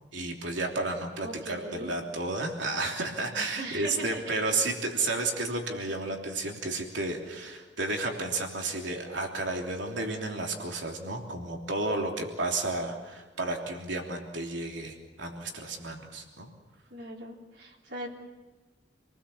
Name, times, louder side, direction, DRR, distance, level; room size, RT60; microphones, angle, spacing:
voice 1, 0.1-16.5, right 2 dB, 90° right, 1 dB, 3.2 m, -32 dB
voice 2, 1.2-1.9 3.6-4.2 16.9-18.1, right 1 dB, 65° right, -1 dB, 3.5 m, -40 dB
28.5 x 19.0 x 7.2 m, 1.2 s
head